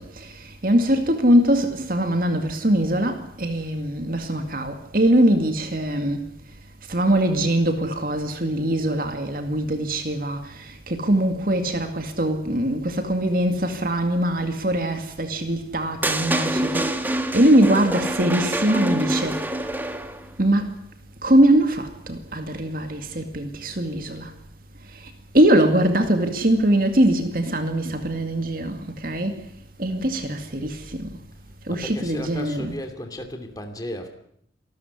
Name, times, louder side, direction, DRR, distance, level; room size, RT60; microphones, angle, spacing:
voice 1, 0.0-6.3 6.9-19.4 20.4-20.7 21.2-24.3 25.3-29.4 29.8-31.2 31.7-32.7, right 1 dB, 50° right, 2.2 m, -22 dB
sound 1, 16.0-20.3, right 1 dB, 10° right, 1.5 m, -26 dB
voice 2, 31.7-34.1, equal, 20° left, 2.8 m, -34 dB
27.5 x 13.0 x 9.7 m
head